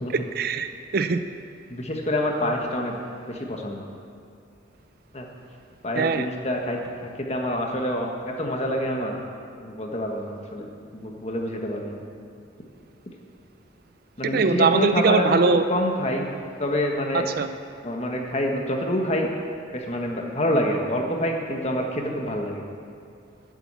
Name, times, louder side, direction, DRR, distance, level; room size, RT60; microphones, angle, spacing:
voice 1, 0.1-1.2 6.0-6.3 14.3-15.6 17.1-17.5, right 4 dB, 50° right, 10 dB, 0.4 m, -22 dB
voice 2, 1.7-3.0 3.3-3.8 5.1-5.3 5.8-9.2 9.6-10.7 10.9-12.0 14.2-15.4 15.7-16.3 16.6-17.3 17.8-19.3 19.7-22.6, left 1 dB, 30° left, 1 dB, 1.3 m, -27 dB
11.5 x 8.1 x 8.2 m, 2.5 s
head